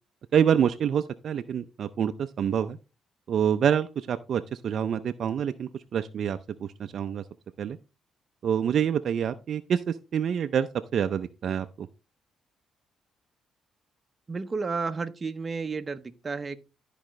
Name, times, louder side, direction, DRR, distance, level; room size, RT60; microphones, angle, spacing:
voice 1, 0.3-2.8 3.3-7.2 7.6-7.8 8.4-10.7 10.9-11.9, right 8 dB, 60° right, 0.5 m, -27 dB
voice 2, 14.3-16.6, right 4 dB, 30° right, 0.8 m, -32 dB
12.5 x 5.0 x 3.2 m
cardioid pair, 90°, 0 cm